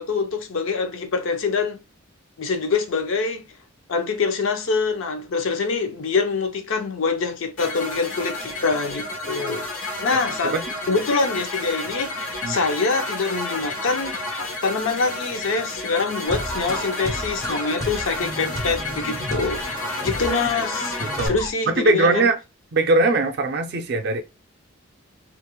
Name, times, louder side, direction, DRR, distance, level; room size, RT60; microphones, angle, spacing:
voice 1, 0.0-1.8 2.4-3.5 3.9-9.7 10.0-10.6 10.9-12.2 12.5-14.1 14.6-19.6 20.0-21.0 21.2-22.3, left 4 dB, 70° left, 0.5 m, -25 dB
sound 1, 7.6-21.3, left 2 dB, 85° left, 0.9 m, -31 dB
sound 2, 16.2-21.5, equal, 15° left, 0.4 m, -32 dB
voice 2, 21.0-21.3 21.7-22.4 22.7-24.2, right 2 dB, 50° right, 0.4 m, -20 dB
2.4 x 2.0 x 2.9 m
head